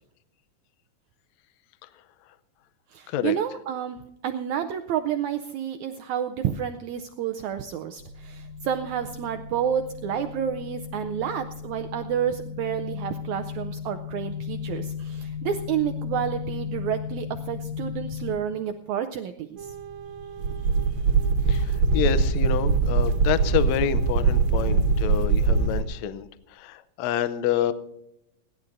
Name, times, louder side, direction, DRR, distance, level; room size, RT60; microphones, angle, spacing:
voice 1, 2.9-4.0 4.2-19.7, right 9 dB, 80° right, 8 dB, 1.7 m, -30 dB
sound 1, 8.0-18.4, left 7 dB, 65° left, 2.2 m, -36 dB
sound 2, 19.6-25.8, right 4 dB, 60° right, 2.2 m, -22 dB
voice 2, 21.5-26.3 26.6-27.7, left 10 dB, 85° left, 13 dB, 1.5 m, -28 dB
30.0 x 11.0 x 2.6 m, 0.84 s
omnidirectional pair, 4.0 m